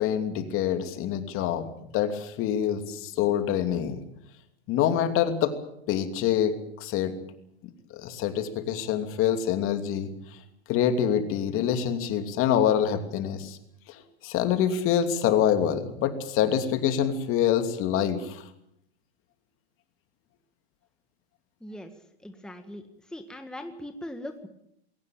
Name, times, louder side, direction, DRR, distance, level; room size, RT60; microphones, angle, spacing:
voice 1, 0.0-1.7 1.9-4.0 4.7-5.5 5.9-7.1 7.9-10.1 10.7-13.6 14.2-18.4, left 9 dB, 40° left, 8 dB, 2.9 m, -25 dB
voice 2, 22.2-22.8 23.1-24.5, left 1 dB, ahead, 6 dB, 1.8 m, -40 dB
21.5 x 18.0 x 9.0 m, 0.75 s
hypercardioid pair, 110°, 33 cm